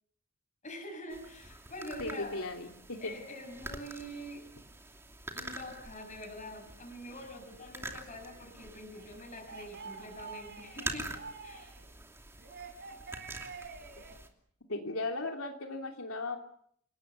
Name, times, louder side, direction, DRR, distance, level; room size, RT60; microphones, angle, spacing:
voice 1, 0.6-2.4 3.0-4.5 5.3-11.8, left 1 dB, 35° left, 1 dB, 6.5 m, -45 dB
sound 1, 1.1-14.3, right 2 dB, 10° right, 2.7 m, -46 dB
voice 2, 2.0-3.1 14.7-16.4, left 2 dB, 75° left, 3 dB, 3.1 m, -36 dB
sound 2, 8.9-11.8 12.4-14.1, right 5 dB, 50° right, 4.8 m, -47 dB
29.0 x 19.0 x 8.2 m, 0.66 s
head